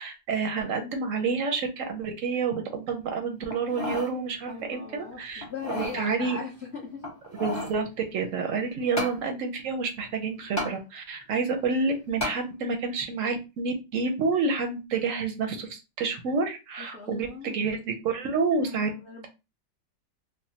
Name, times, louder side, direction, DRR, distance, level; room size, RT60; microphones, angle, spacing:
voice 1, 0.0-5.4 5.7-6.4 7.4-18.9, right 4 dB, 65° right, 4 dB, 0.8 m, -29 dB
sound 1, 3.5-4.1 4.6-4.7 5.4-6.0 7.0-7.8 9.0-9.2 10.6-10.7 12.2-12.4 13.0-13.1, left 1 dB, 20° left, 0.5 m, -32 dB
voice 2, 4.5-7.1 8.8-8.9 16.8-17.6 18.6-19.3, left 3 dB, 60° left, -2 dB, 0.7 m, -39 dB
3.5 x 2.0 x 2.7 m, 0.27 s
omnidirectional pair, 1.9 m